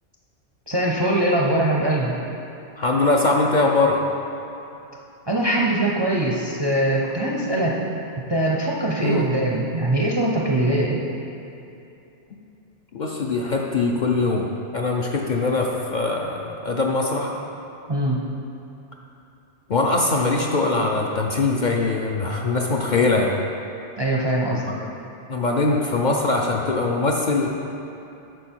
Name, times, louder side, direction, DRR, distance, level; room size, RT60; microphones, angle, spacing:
voice 1, 0.7-2.1 5.3-7.8 8.3-11.0 17.9-18.2 24.0-24.6, right 1 dB, 30° right, -2 dB, 0.5 m, -22 dB
voice 2, 2.8-4.0 9.0-9.2 12.3-12.4 12.9-17.3 19.7-23.4 24.8-24.9 25.3-27.5, left 3 dB, 50° left, -1 dB, 0.6 m, -22 dB
9.1 x 6.2 x 4.5 m, 2.8 s
omnidirectional pair, 1.2 m